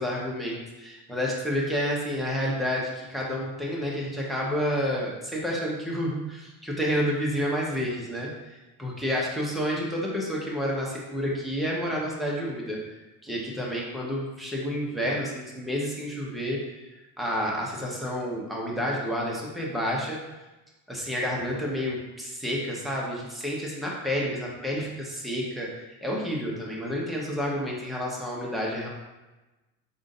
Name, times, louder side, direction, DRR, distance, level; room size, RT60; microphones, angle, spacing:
voice 1, 0.0-8.3 8.8-12.8 13.2-16.9 17.2-20.2 20.9-28.9, equal, ahead, -4 dB, 1.0 m, -30 dB
3.7 x 2.6 x 3.8 m, 1.1 s
hypercardioid pair, 85°, 45 cm